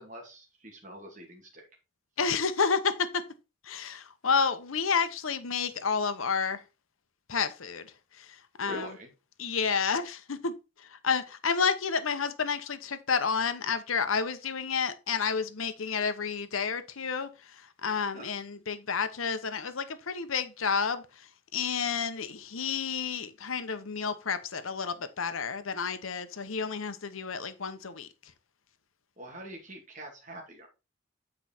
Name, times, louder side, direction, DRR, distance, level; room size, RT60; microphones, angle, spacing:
voice 1, 0.0-1.7 8.6-9.1 18.1-18.2 29.2-30.7, equal, 40° right, 2.4 m, -44 dB
voice 2, 2.2-3.2 3.6-6.6 7.3-7.9 8.2-8.9 9.4-10.5 10.8-28.1, left 5 dB, 90° left, 0.9 m, -30 dB
8.5 x 4.8 x 4.3 m
head